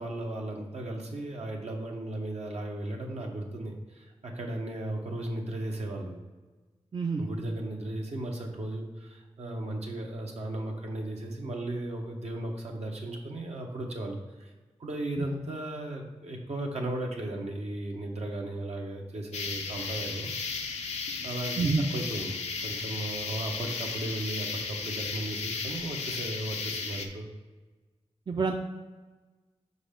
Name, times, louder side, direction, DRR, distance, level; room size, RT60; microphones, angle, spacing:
voice 1, 0.0-6.1 7.2-14.5 14.8-20.3 21.2-27.3, right 1 dB, 75° right, 0 dB, 1.2 m, -36 dB
voice 2, 6.9-7.2 21.6-21.9 28.3-28.5, right 4 dB, 40° right, 3 dB, 0.5 m, -27 dB
sound 1, 19.3-27.1, left 4 dB, 90° left, 0.6 m, -35 dB
5.5 x 4.0 x 5.2 m, 1.3 s
cardioid pair, 65°, 11 cm